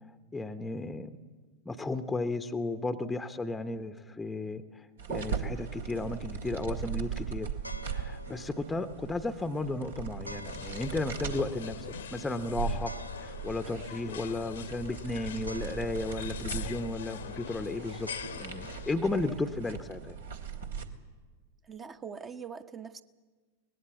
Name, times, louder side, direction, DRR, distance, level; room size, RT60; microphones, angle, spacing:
voice 1, 0.3-1.2 1.7-7.5 7.9-18.1 18.4-20.2, left 2 dB, 10° left, 9 dB, 0.9 m, -34 dB
sound 1, 5.0-20.8, right 7 dB, 70° right, 2.0 m, -39 dB
sound 2, 7.5-18.7, left 1 dB, 90° left, 0.7 m, -49 dB
sound 3, 10.4-19.0, left 9 dB, 65° left, 1.0 m, -42 dB
voice 2, 21.6-23.0, right 6 dB, 20° right, 8 dB, 1.0 m, -42 dB
23.5 x 19.0 x 8.3 m, 1.4 s
figure-of-eight pair, 90°, 0 cm